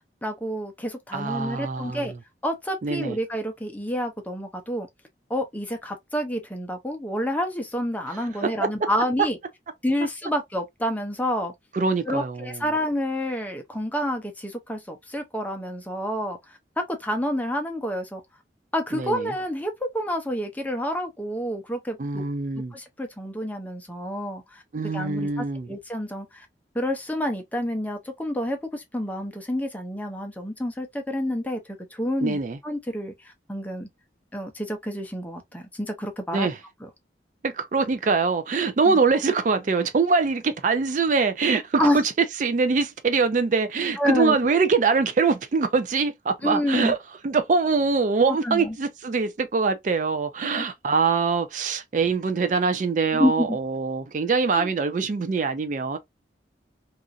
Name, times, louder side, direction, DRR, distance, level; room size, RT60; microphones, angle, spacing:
voice 1, 0.2-2.1 2.4-4.9 5.3-9.4 9.8-11.5 12.1-16.4 16.8-18.2 18.7-22.2 22.7-24.6 24.9-26.5 26.7-31.6 31.9-33.1 33.5-33.9 34.3-36.5 38.9-39.0 41.8-42.0 44.0-44.4 46.4-46.9 48.3-48.8 50.6-50.7 53.1-53.6 54.6-54.7, equal, 10° left, 0.6 m, -28 dB
voice 2, 1.1-2.2 2.8-3.2 8.1-8.5 8.8-8.9 11.7-12.6 18.9-19.3 22.0-22.7 24.7-25.7 32.2-32.6 36.3-36.6 37.4-42.0 42.4-47.0 47.2-56.0, right 4 dB, 45° right, 0.4 m, -23 dB
2.9 x 2.4 x 2.5 m
head